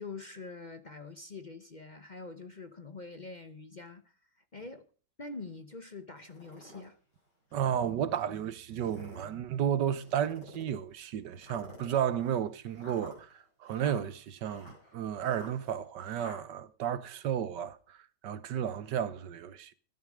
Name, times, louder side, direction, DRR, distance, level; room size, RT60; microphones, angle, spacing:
voice 1, 0.0-4.0 4.5-4.8 5.2-7.0, left 3 dB, 35° left, 0.8 m, -45 dB
sound 1, 6.2-6.9 7.5-7.6 8.6-9.3 10.0-10.8 11.4-16.4, equal, 80° left, 6.8 m, -50 dB
voice 2, 7.5-18.0 18.2-19.7, right 9 dB, 85° right, 1.6 m, -33 dB
14.5 x 11.5 x 5.0 m
omnidirectional pair, 1.8 m